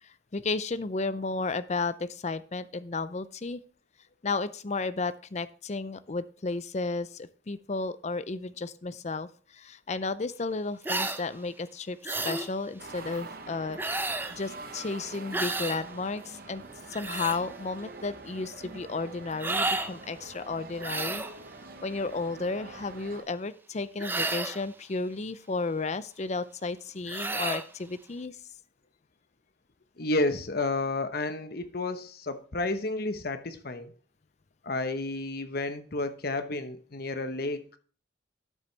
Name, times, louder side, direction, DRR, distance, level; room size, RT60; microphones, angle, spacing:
voice 1, 0.0-3.6 4.2-13.8 14.3-16.6 16.9-21.2 21.8-28.4, left 3 dB, 35° left, 0.5 m, -33 dB
sound 1, 10.8-11.2 12.0-12.5 13.8-14.4 15.3-15.8 16.7-17.4 19.4-19.9 20.8-21.3 24.0-24.6 27.1-27.7, right 2 dB, 10° right, 0.6 m, -31 dB
sound 2, 12.8-23.2, right 3 dB, 50° right, 1.0 m, -45 dB
voice 2, 30.0-33.9 34.6-37.8, left 2 dB, 50° left, 1.0 m, -31 dB
12.0 x 6.9 x 3.3 m
head